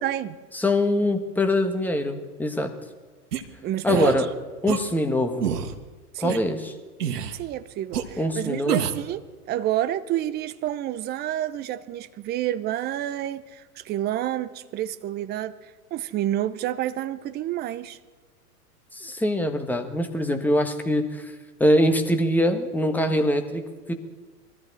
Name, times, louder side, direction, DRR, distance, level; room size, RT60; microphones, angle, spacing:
voice 1, 0.0-0.4 3.6-4.2 6.1-6.4 7.3-15.6 15.9-18.0, right 12 dB, 20° right, 13 dB, 0.6 m, -29 dB
voice 2, 0.5-2.7 3.8-4.3 4.6-5.5 6.2-6.7 8.2-8.8 18.9-21.3 21.6-23.6 23.9-24.0, left 1 dB, 5° left, 6 dB, 1.5 m, -23 dB
sound 1, 3.3-3.4 3.9-4.2 4.7-4.8 5.4-5.7 6.3-6.4 7.0-7.4 7.9-8.0 8.7-9.0, right 8 dB, 75° right, 1.8 m, -27 dB
22.5 x 14.0 x 4.2 m, 1.3 s
hypercardioid pair, 115°, 47 cm